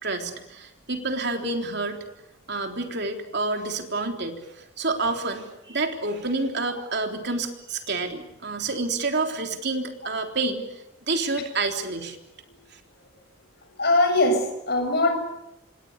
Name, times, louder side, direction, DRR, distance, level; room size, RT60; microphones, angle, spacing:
voice 1, 0.0-2.0 2.5-10.6 11.1-12.2, right 3 dB, 50° right, 3.7 m, -28 dB
voice 2, 13.8-15.1, left 2 dB, 45° left, 7.1 m, -21 dB
27.5 x 25.5 x 6.8 m
head